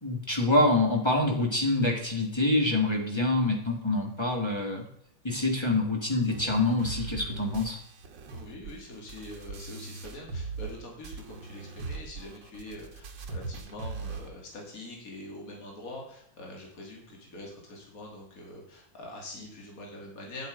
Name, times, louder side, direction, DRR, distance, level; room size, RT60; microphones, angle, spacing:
voice 1, 0.0-4.8 5.2-7.8, left 2 dB, 15° left, 1 dB, 1.8 m, -26 dB
sound 1, 6.3-10.8 11.0-14.3, right 4 dB, 70° right, 1.8 m, -40 dB
voice 2, 8.3-20.5, left 1 dB, 45° left, 0 dB, 2.9 m, -44 dB
9.4 x 7.7 x 5.2 m, 0.70 s
omnidirectional pair, 2.1 m